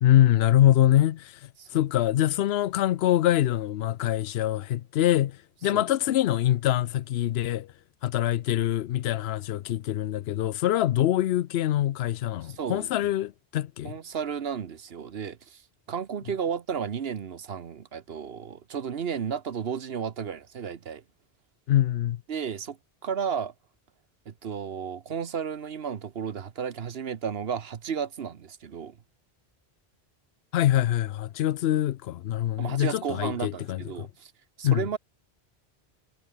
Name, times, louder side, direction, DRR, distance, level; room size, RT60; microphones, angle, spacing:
voice 1, 0.0-7.7 8.0-13.9 21.7-22.2 30.5-34.1 34.6-34.8, left 12 dB, 75° left, 0.8 m, -24 dB
voice 2, 12.4-12.9 13.8-15.6 15.9-21.0 22.3-22.8 23.0-23.5 24.3-29.0 32.6-34.3 34.6-35.0, right 7 dB, 70° right, 1.2 m, -33 dB
omnidirectional pair, 1.1 m